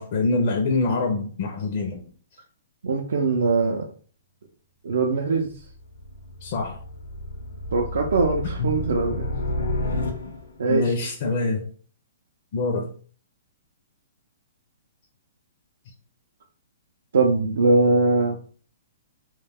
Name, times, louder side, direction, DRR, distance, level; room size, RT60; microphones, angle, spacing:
voice 1, 0.0-2.0 6.4-6.8 8.6-8.8 10.7-11.6 12.5-12.9, left 3 dB, 45° left, 1 dB, 0.4 m, -25 dB
voice 2, 2.8-3.9 4.8-5.5 7.7-9.3 10.6-10.9 17.1-18.4, right 3 dB, 80° right, 0 dB, 0.4 m, -21 dB
sound 1, 5.5-10.7, left 1 dB, 90° left, 0.7 m, -31 dB
2.2 x 2.2 x 3.4 m, 0.43 s
hypercardioid pair, 150°, 0 cm